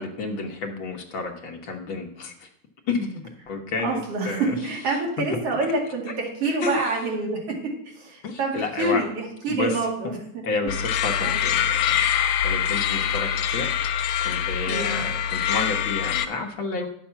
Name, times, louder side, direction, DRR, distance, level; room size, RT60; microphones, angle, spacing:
voice 1, 0.0-2.5 2.9-4.6 6.6-6.9 8.2-9.0 9.5-9.8 10.4-12.0 12.4-13.7 14.2-16.9, left 3 dB, 55° left, 2 dB, 1.5 m, -30 dB
voice 2, 3.8-7.6 8.0-10.4 11.2-11.4 14.7-15.0, right 2 dB, 55° right, -1 dB, 3.2 m, -27 dB
sound 1, 10.7-16.3, left 9 dB, 80° left, 2.0 m, -24 dB
10.0 x 7.2 x 5.8 m, 0.70 s
omnidirectional pair, 3.4 m